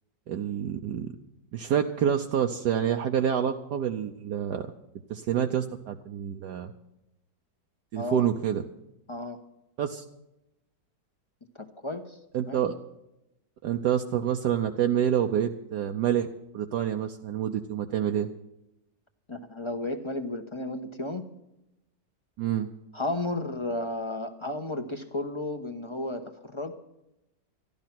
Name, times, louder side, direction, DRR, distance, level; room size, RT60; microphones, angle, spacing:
voice 1, 0.3-1.1 1.5-4.7 5.1-6.7 7.9-8.6 9.8-10.0 12.3-12.7 13.6-16.3 16.5-18.3 22.4-22.7, right 9 dB, 70° right, 4 dB, 1.3 m, -27 dB
voice 2, 9.1-9.4 11.5-12.2 12.5-12.6 19.3-21.2 22.9-26.8, left 2 dB, 20° left, 5 dB, 0.8 m, -33 dB
14.0 x 12.0 x 6.0 m, 0.88 s
omnidirectional pair, 1.9 m